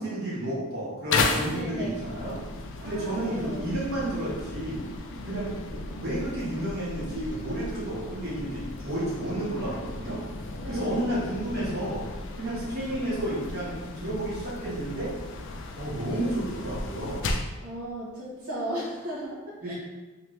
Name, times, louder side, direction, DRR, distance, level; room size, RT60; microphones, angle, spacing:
voice 1, 0.0-2.3 2.8-4.9 5.2-10.2 10.7-12.0 12.3-15.1 15.8-17.2 19.6-19.7, right 1 dB, 45° right, -8 dB, 1.2 m, -31 dB
sound 1, 1.1-17.6, left 3 dB, 55° left, 0.4 m, -35 dB
voice 2, 1.4-2.0 2.8-3.7 10.6-11.0 17.6-19.7, right 1 dB, 70° right, -8 dB, 1.0 m, -35 dB
3.2 x 2.9 x 3.1 m, 1.2 s
head